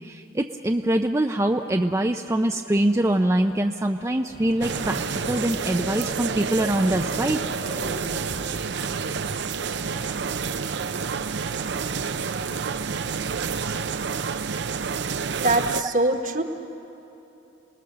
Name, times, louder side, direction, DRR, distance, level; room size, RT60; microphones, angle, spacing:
voice 1, 0.0-5.0 5.3-7.4, right 1 dB, 15° right, 4 dB, 0.5 m, -23 dB
Bird / Cricket, 4.3-14.0, equal, 75° left, 6.8 m, -40 dB
sound 1, 4.6-15.8, right 5 dB, 60° right, 0.6 m, -29 dB
voice 2, 15.4-16.4, right 2 dB, 45° right, 5 dB, 1.4 m, -22 dB
29.0 x 19.5 x 6.8 m, 2.8 s
head